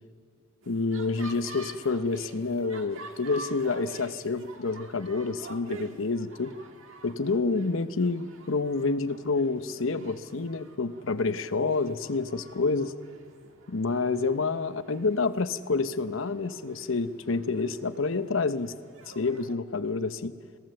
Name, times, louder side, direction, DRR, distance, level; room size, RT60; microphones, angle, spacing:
sound 1, 0.6-19.6, right 2 dB, 70° right, 1.7 m, -48 dB
voice 1, 0.7-6.5 7.0-12.9 13.7-18.7 19.1-20.3, left 3 dB, 70° left, 11 dB, 0.9 m, -28 dB
26.5 x 17.5 x 7.7 m, 2.1 s
head